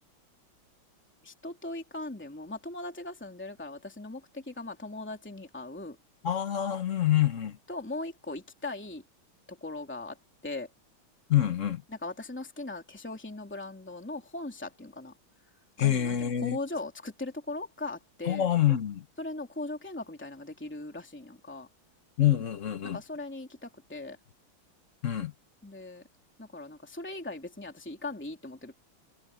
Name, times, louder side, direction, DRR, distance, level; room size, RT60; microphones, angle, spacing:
voice 1, 1.2-6.0 7.7-9.0 9.5-10.7 11.9-15.1 15.8-18.5 19.2-21.7 22.9-24.2 25.6-26.0 26.4-28.7, left 2 dB, 5° left, 2.8 m, -39 dB
voice 2, 6.2-7.6 11.3-11.8 15.8-16.6 18.3-19.0 22.2-23.0 25.0-25.3, left 11 dB, 45° left, 1.1 m, -26 dB
omnidirectional pair, 2.3 m